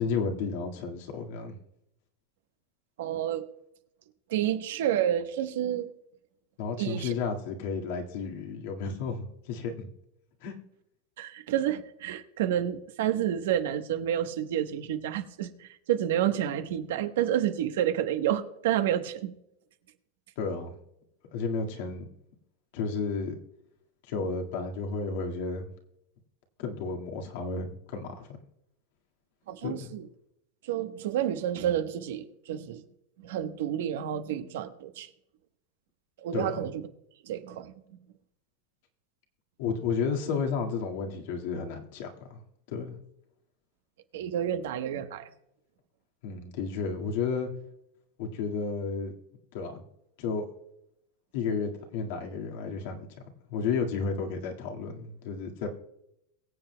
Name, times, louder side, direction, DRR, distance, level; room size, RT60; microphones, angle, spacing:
voice 1, 0.0-1.6 6.6-9.9 10.4-10.5 20.4-20.8 21.3-22.1 22.7-23.4 24.1-25.7 26.6-28.3 29.6-29.9 36.3-36.6 39.6-42.4 42.7-43.0 46.2-47.5 48.2-49.1 49.5-49.8 50.2-50.5 51.3-53.1 53.5-55.7, left 5 dB, 65° left, 2 dB, 1.8 m, -32 dB
voice 2, 3.0-3.4 4.3-5.9 6.8-7.1 11.2-19.3 29.5-30.0 30.6-32.8 33.2-35.1 36.2-36.8 37.2-37.7 44.1-45.3, right 10 dB, 75° right, 8 dB, 1.1 m, -29 dB
22.5 x 7.6 x 2.2 m, 0.79 s
supercardioid pair, 130°, 0 cm